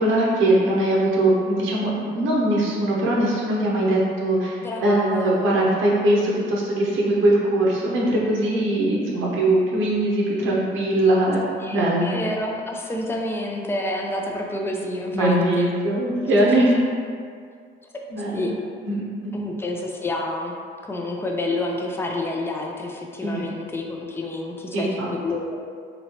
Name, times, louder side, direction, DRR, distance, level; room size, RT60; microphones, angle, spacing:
voice 1, 0.0-11.4 11.7-12.1 15.1-16.8 18.1-18.5 18.8-19.3 23.2-23.4 24.7-25.1, right 1 dB, 85° right, -4 dB, 0.7 m, -21 dB
voice 2, 4.6-5.5 11.6-15.7 16.4-16.5 18.3-18.5 19.3-20.5 20.8-24.9 25.2-25.6, left 2 dB, 10° left, 0 dB, 0.4 m, -29 dB
3.1 x 2.8 x 2.8 m, 2.1 s
cardioid pair, 90°, 20 cm